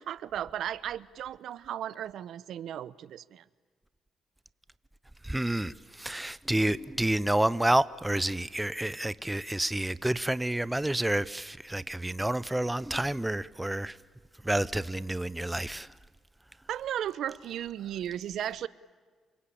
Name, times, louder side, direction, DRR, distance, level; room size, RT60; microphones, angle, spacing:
voice 1, 0.0-3.4 16.7-18.7, right 10 dB, 75° right, 0.9 m, -35 dB
voice 2, 5.2-14.0 14.4-15.9, right 1 dB, 10° right, 0.8 m, -29 dB
28.0 x 24.0 x 8.6 m
cardioid pair, 90°, 0 cm